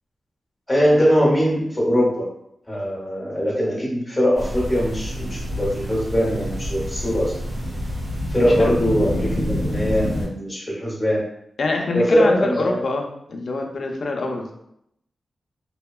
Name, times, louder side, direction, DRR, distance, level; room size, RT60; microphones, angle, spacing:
voice 1, 0.7-2.3 2.7-7.3 8.3-11.2 11.9-12.8, equal, 15° left, -5 dB, 0.9 m, -21 dB
sound 1, 4.4-10.2, equal, 85° right, 1.3 m, -27 dB
voice 2, 11.6-14.5, left 3 dB, 55° left, 2 dB, 0.4 m, -25 dB
2.7 x 2.2 x 2.3 m, 0.76 s
wide cardioid pair, 145°, 0 cm